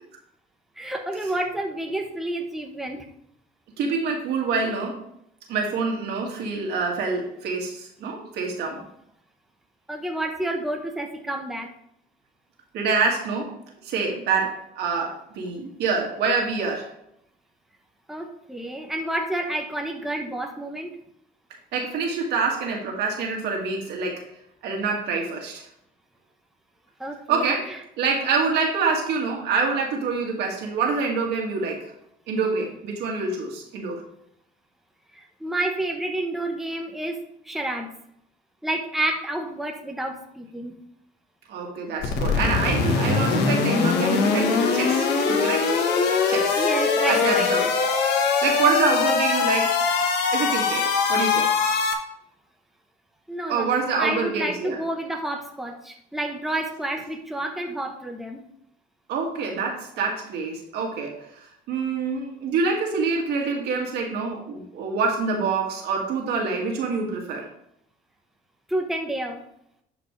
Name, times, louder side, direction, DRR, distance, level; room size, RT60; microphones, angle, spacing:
voice 1, 0.8-3.0 9.9-11.7 18.1-20.9 27.0-27.8 35.1-37.2 37.4-37.9 38.6-40.7 46.6-47.5 53.3-58.4 68.7-69.4, right 1 dB, ahead, 2 dB, 1.0 m, -29 dB
voice 2, 3.8-5.0 5.5-8.8 12.7-13.5 13.8-16.9 21.7-24.2 24.6-25.6 27.3-31.9 32.3-34.0 41.5-45.7 46.3-46.7 47.1-47.7 48.4-49.8 50.3-51.6 53.5-54.8 59.1-61.3 61.7-67.5, right 4 dB, 75° right, 0 dB, 2.2 m, -26 dB
sound 1, 42.0-51.9, left 5 dB, 75° left, 1.3 m, -22 dB
11.0 x 5.1 x 3.3 m, 0.74 s
cardioid pair, 110°, 17 cm